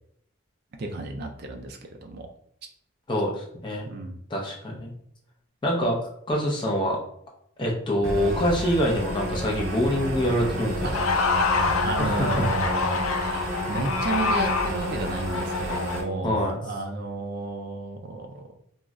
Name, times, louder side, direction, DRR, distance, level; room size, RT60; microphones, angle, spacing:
voice 1, 0.8-2.3 3.9-4.2 10.8-18.5, right 2 dB, 50° right, 4 dB, 0.3 m, -33 dB
voice 2, 3.1-3.9 4.3-4.9 5.6-7.0 7.6-11.0 12.0-12.5 16.2-16.6, equal, 20° left, -2 dB, 0.5 m, -25 dB
sound 1, 8.0-16.0, equal, 70° right, 0.7 m, -31 dB
sound 2, 10.9-16.0, left 4 dB, 80° left, 0.4 m, -26 dB
2.3 x 2.0 x 3.6 m, 0.70 s
head